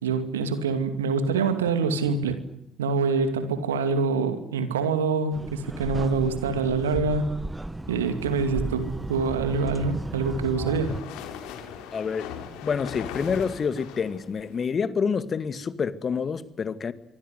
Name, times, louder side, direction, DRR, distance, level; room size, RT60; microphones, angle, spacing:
voice 1, 0.0-2.4 2.8-7.4 7.9-11.0, right 4 dB, 85° right, 2.4 m, -25 dB
sound 1, 5.3-11.0, right 1 dB, 10° right, 1.8 m, -35 dB
sound 2, 9.6-14.7, left 8 dB, 70° left, 3.7 m, -40 dB
voice 2, 11.9-12.3 12.6-16.9, left 6 dB, 45° left, 2.0 m, -27 dB
26.0 x 25.0 x 8.0 m
figure-of-eight pair, 50°, 0 cm